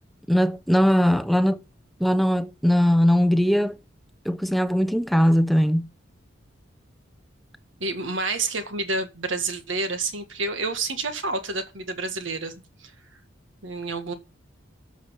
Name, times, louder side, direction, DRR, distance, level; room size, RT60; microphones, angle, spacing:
voice 1, 0.3-1.6 2.0-3.8 4.3-5.9, equal, ahead, 0.5 m, -20 dB
voice 2, 7.8-12.5 12.8-12.9 13.6-14.1, right 3 dB, 80° right, 1.7 m, -29 dB
13.0 x 5.1 x 5.8 m
head